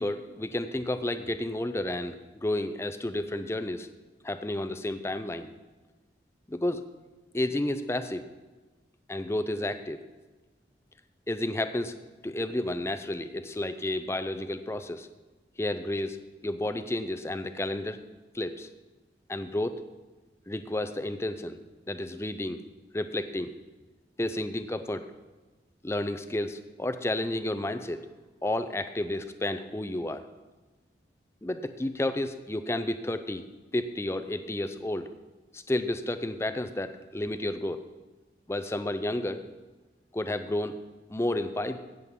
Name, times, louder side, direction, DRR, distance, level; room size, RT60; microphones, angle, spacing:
voice 1, 0.0-2.2 2.4-3.9 4.2-5.5 6.5-6.8 7.3-8.3 9.1-10.0 11.3-11.9 12.2-15.1 15.6-16.2 16.4-18.0 18.3-18.7 19.3-19.8 20.5-21.6 21.9-22.6 22.9-23.5 24.2-25.0 25.8-28.0 28.4-30.2 31.4-33.4 33.7-35.1 35.5-37.9 38.5-39.4 40.1-40.8 41.1-41.8, left 1 dB, 15° left, 10 dB, 0.5 m, -31 dB
16.5 x 7.6 x 3.7 m, 1.2 s
head